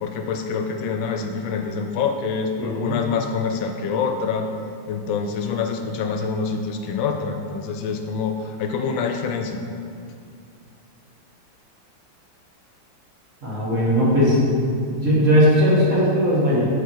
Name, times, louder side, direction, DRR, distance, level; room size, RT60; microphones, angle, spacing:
voice 1, 0.0-4.5 4.9-9.6, left 5 dB, 80° left, 5 dB, 1.3 m, -26 dB
voice 2, 2.6-3.0 13.4-14.4 14.9-16.7, equal, 40° right, -8 dB, 1.8 m, -18 dB
6.9 x 4.6 x 4.6 m, 2.4 s
omnidirectional pair, 2.1 m